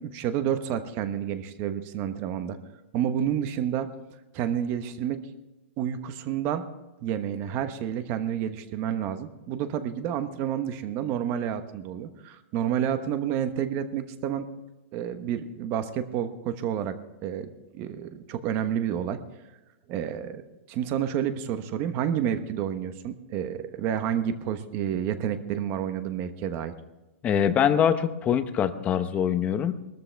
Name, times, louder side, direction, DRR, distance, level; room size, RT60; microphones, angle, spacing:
voice 1, 0.0-2.6 2.9-3.9 4.3-5.2 5.8-6.6 7.0-14.4 14.9-17.0 17.2-17.5 17.7-19.2 19.9-20.4 20.7-26.7, right 9 dB, 30° right, 10 dB, 1.2 m, -29 dB
voice 2, 27.2-29.7, left 8 dB, 20° left, 10 dB, 0.8 m, -23 dB
21.5 x 13.5 x 3.5 m, 1.1 s
hypercardioid pair, 155°, 7 cm